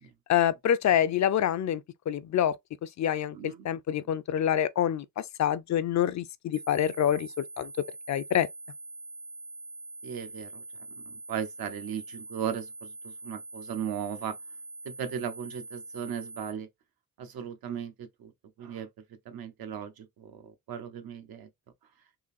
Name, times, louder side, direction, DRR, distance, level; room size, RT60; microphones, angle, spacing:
voice 1, 0.3-2.6 2.8-7.7 8.1-8.5, left 10 dB, 55° left, 0.4 m, -27 dB
voice 2, 3.3-3.6 4.4-4.5 10.0-10.6 11.1-14.3 14.8-16.7 17.2-18.3 18.6-18.9 19.3-21.5, right 8 dB, 85° right, 0.8 m, -37 dB
sound 1, 6.5-16.5, right 3 dB, 10° right, 0.4 m, -44 dB
3.7 x 2.5 x 2.5 m
cardioid pair, 75°, 35 cm